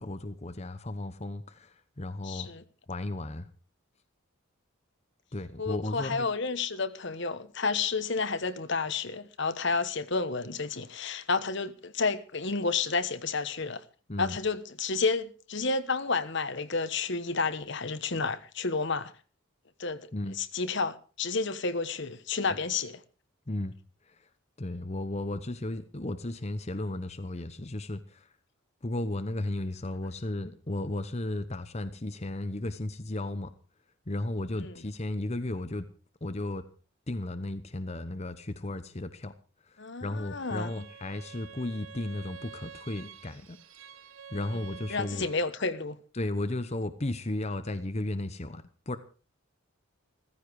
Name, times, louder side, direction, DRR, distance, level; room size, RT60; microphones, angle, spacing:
voice 1, 0.0-2.5 2.9-3.5 5.3-6.3 14.1-14.4 20.1-20.4 23.5-23.7 24.1-24.3 24.6-28.3 28.8-33.5 34.1-35.9 36.2-36.7 37.1-39.3 39.6-43.6 44.3-45.3 46.1-49.0, left 2 dB, 30° left, 1.0 m, -34 dB
voice 2, 2.2-2.6 5.6-13.8 14.2-19.1 19.8-20.1 20.4-23.0 34.6-34.7 39.8-40.9 44.9-46.0, left 4 dB, 55° left, 1.2 m, -31 dB
Bowed string instrument, 40.4-45.5, right 7 dB, 75° right, 1.3 m, -48 dB
16.0 x 15.0 x 4.8 m
head